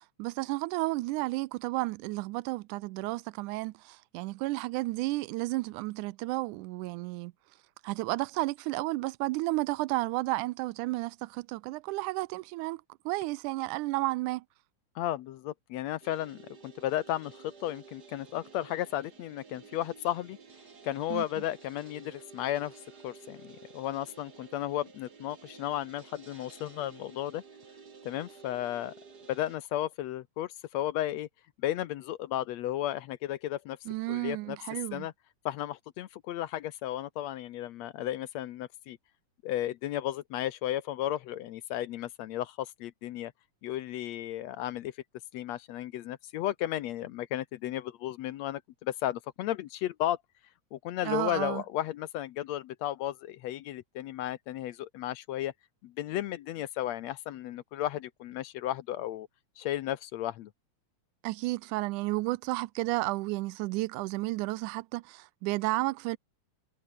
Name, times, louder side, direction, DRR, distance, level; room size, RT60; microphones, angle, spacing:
voice 1, 0.0-7.3 7.8-14.4 21.1-21.2 33.9-35.1 51.0-51.6 61.2-66.2, right 20 dB, 85° right, 2.1 m, -32 dB
voice 2, 15.0-20.4 20.8-22.8 23.0-27.4 28.1-28.9 29.3-31.3 31.6-33.8 34.1-34.6 34.9-35.1 35.5-39.0 39.4-43.3 43.6-44.9 45.3-50.2 50.7-55.5 55.8-59.3 59.6-60.5, left 13 dB, 70° left, 1.9 m, -34 dB
sound 1, 16.0-29.6, right 5 dB, 35° right, 2.6 m, -53 dB
omnidirectional pair, 3.5 m